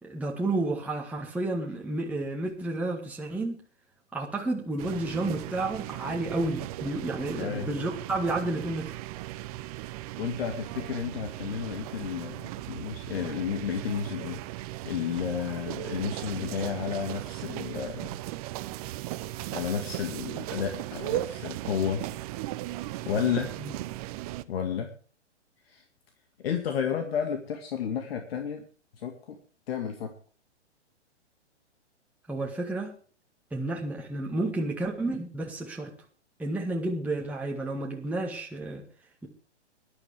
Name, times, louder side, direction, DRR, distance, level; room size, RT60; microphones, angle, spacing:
voice 1, 0.0-3.6 4.1-8.9 32.3-32.9 33.5-35.9 36.4-38.9, right 2 dB, 5° right, -1 dB, 1.9 m, -31 dB
sound 1, 4.8-24.4, right 16 dB, 35° right, 0.7 m, -37 dB
voice 2, 7.3-7.7 10.2-14.4 14.8-18.1 19.5-22.0 23.1-23.5 24.5-24.9 25.7-25.8 26.4-28.6 29.0-29.4 29.7-30.1, left 8 dB, 55° left, 5 dB, 2.2 m, -32 dB
20.0 x 11.5 x 3.5 m, 0.41 s
hypercardioid pair, 120°, 35 cm